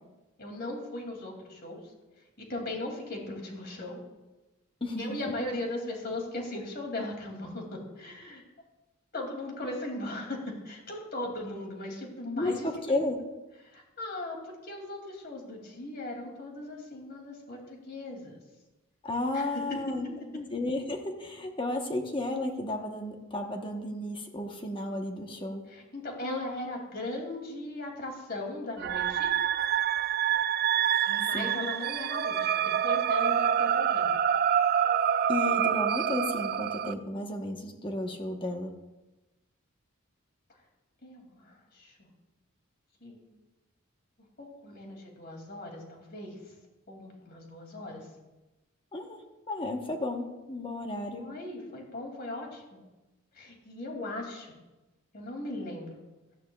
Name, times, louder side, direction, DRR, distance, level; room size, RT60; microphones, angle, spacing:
voice 1, 0.4-1.8 2.4-4.0 5.0-8.4 9.1-13.0 13.6-18.3 19.3-19.8 25.7-29.3 31.1-34.1 41.0-42.1 43.0-43.2 44.4-46.4 46.9-48.1 51.0-52.8 53.3-54.5 55.1-56.0, left 2 dB, 50° left, 1 dB, 2.6 m, -38 dB
voice 2, 12.3-13.2 19.0-20.1 20.3-25.6 31.3-31.6 35.3-38.7 48.9-49.2 49.5-51.3, left 1 dB, 25° left, 3 dB, 1.0 m, -33 dB
sound 1, 28.8-36.9, right 9 dB, 45° right, 0.3 m, -26 dB
17.0 x 12.5 x 2.3 m, 1.1 s
head